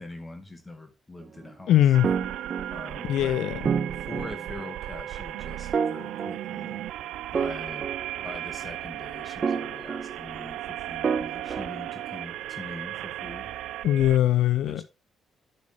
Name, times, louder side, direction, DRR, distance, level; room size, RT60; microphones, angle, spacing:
voice 1, 0.0-1.8 2.7-3.5 4.1-6.8 7.3-7.9 8.2-13.5 14.6-14.8, left 2 dB, 20° left, 2.0 m, -43 dB
voice 2, 1.7-2.1 3.0-3.6 13.8-14.8, left 12 dB, 80° left, 0.6 m, -21 dB
sound 1, 1.9-14.2, right 13 dB, 85° right, 0.3 m, -36 dB
sound 2, 2.0-3.2 3.7-4.8 5.7-6.9 7.3-8.7 9.4-10.6 11.0-12.4, right 6 dB, 45° right, 1.0 m, -31 dB
9.9 x 6.5 x 3.4 m
cardioid pair, 90°, 0 cm